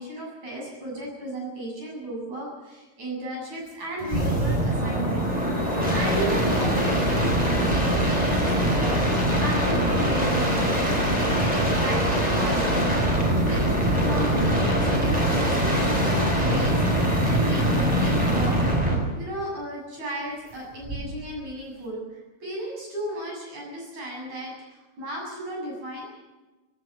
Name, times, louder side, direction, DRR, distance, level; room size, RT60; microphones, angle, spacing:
voice 1, 0.0-5.3 5.6-10.9 11.2-18.7 19.2-26.1, right 1 dB, 55° right, -1 dB, 8.7 m, -35 dB
sound 1, 4.0-19.1 20.8-21.3, right 1 dB, 10° right, 5.2 m, -23 dB
17.5 x 17.0 x 10.0 m, 1.2 s
omnidirectional pair, 3.9 m